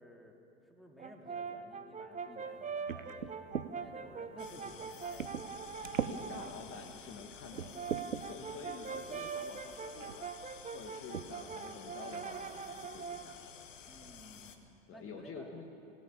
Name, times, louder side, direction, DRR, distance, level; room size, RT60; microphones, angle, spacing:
voice 1, 0.0-3.4 3.6-5.3 13.9-14.7 14.9-15.5, equal, ahead, 2 dB, 2.6 m, -55 dB
Brass instrument, 1.0-6.6 7.5-13.4, right 5 dB, 20° right, 1.1 m, -43 dB
sound 1, 2.9-3.7 4.4-4.6 5.2-5.5 5.8-6.2 6.8-6.9 7.5-8.2 9.3-9.5 10.0-10.2 11.1-11.3 11.7-11.8 12.1-12.5, right 8 dB, 85° right, 0.7 m, -39 dB
sound 2, 4.4-14.6, left 7 dB, 75° left, 1.6 m, -53 dB
voice 2, 6.0-8.0 8.3-13.4 14.9-15.7, left 4 dB, 35° left, 4 dB, 1.7 m, -48 dB
23.5 x 17.0 x 7.2 m, 2.8 s
figure-of-eight pair, 75°, 38 cm